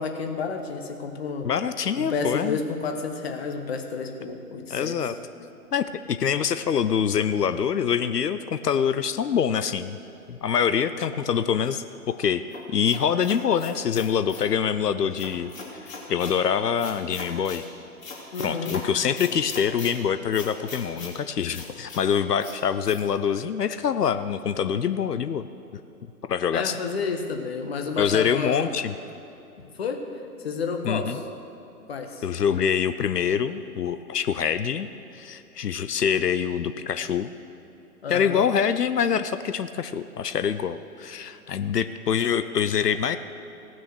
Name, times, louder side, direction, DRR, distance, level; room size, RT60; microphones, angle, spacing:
voice 1, 0.0-1.5 2.0-5.1 18.3-18.8 26.5-28.6 29.8-30.0 30.4-31.2 31.9-32.2 38.0-38.5, left 4 dB, 40° left, 5 dB, 1.2 m, -30 dB
voice 2, 1.4-2.6 4.7-5.1 5.7-10.0 10.3-12.4 12.7-15.5 15.8-17.6 18.4-25.5 26.3-26.8 28.0-28.9 30.8-31.2 32.2-34.9 35.1-37.3 38.1-43.2, left 7 dB, 80° left, 11 dB, 0.6 m, -25 dB
sound 1, 12.5-14.5 15.2-16.4 16.8-17.6 18.0-18.8 19.2-19.9 20.3-21.1 21.5-22.0 22.4-22.6 22.8-23.0, left 4 dB, 55° left, 2.9 m, -39 dB
16.5 x 6.3 x 6.3 m, 2.8 s
figure-of-eight pair, 135°, 47 cm